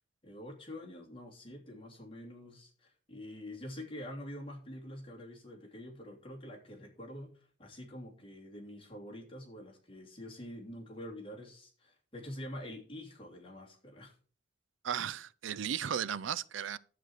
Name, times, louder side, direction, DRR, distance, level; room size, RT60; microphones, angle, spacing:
voice 1, 0.2-14.1, left 1 dB, 30° left, 3.0 m, -46 dB
voice 2, 14.8-16.8, right 8 dB, 80° right, 0.5 m, -35 dB
11.0 x 8.1 x 4.6 m
head